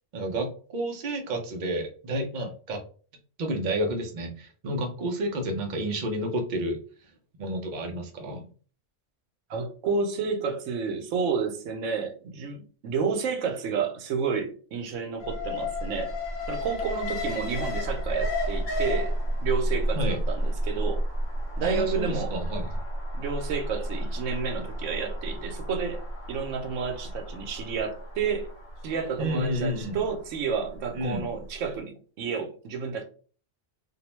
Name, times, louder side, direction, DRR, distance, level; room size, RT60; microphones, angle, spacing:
voice 1, 0.1-2.8 3.4-6.8 7.4-8.4 20.0-20.2 21.6-22.7 29.2-30.0 30.9-31.3, right 1 dB, 55° right, 0.5 m, -30 dB
voice 2, 9.5-16.1 16.5-19.1 19.4-21.0 21.6-22.3 23.1-26.0 26.3-28.5 28.8-33.0, right 5 dB, 75° right, 0.9 m, -30 dB
Alarm, 15.2-31.3 31.6-31.7, equal, 65° left, 0.8 m, -31 dB
2.6 x 2.0 x 2.9 m
omnidirectional pair, 1.3 m